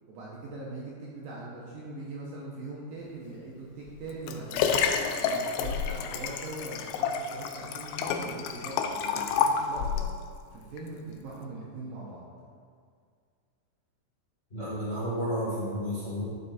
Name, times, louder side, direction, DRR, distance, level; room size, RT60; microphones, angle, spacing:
voice 1, 0.1-4.7 5.2-10.1 10.5-12.2, right 2 dB, 70° right, -5 dB, 2.4 m, -41 dB
Liquid, 3.9-10.1 10.8-10.9, left 6 dB, 80° left, 2.5 m, -29 dB
voice 2, 14.5-16.2, equal, 25° left, -10 dB, 1.5 m, -31 dB
12.0 x 6.7 x 4.3 m, 2.1 s
omnidirectional pair, 5.1 m